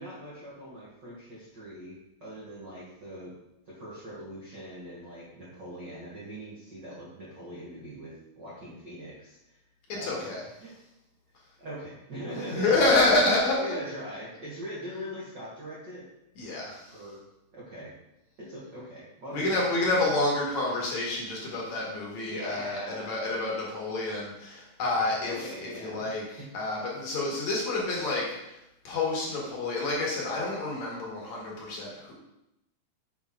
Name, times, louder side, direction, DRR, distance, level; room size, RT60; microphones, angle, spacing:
voice 1, 0.0-3.4 3.6-9.6 9.9-10.2 10.6-10.7 11.6-12.7 13.5-16.1 16.9-17.2 17.5-17.9 18.4-19.8 22.3-23.1 25.2-26.5 27.2-27.4, equal, 55° right, -7 dB, 1.2 m, -41 dB
voice 2, 9.9-10.4 12.5-13.6 16.4-16.9 19.3-28.6 28.8-32.1, left 2 dB, 60° left, -3 dB, 2.4 m, -28 dB
7.0 x 5.6 x 3.6 m, 0.86 s
omnidirectional pair, 4.0 m